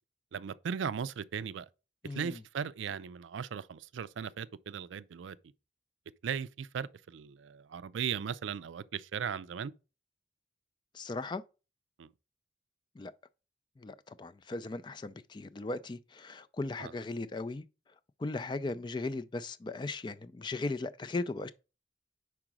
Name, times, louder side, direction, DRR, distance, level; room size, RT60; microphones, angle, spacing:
voice 1, 0.3-1.7 2.1-5.4 6.2-9.7 12.0-12.1 16.8-16.9, right 7 dB, 85° right, 0.4 m, -37 dB
voice 2, 2.0-2.4 10.9-11.4 13.0-13.1 13.8-17.6 18.2-21.5, left 2 dB, 25° left, 0.3 m, -37 dB
5.0 x 4.7 x 6.0 m
head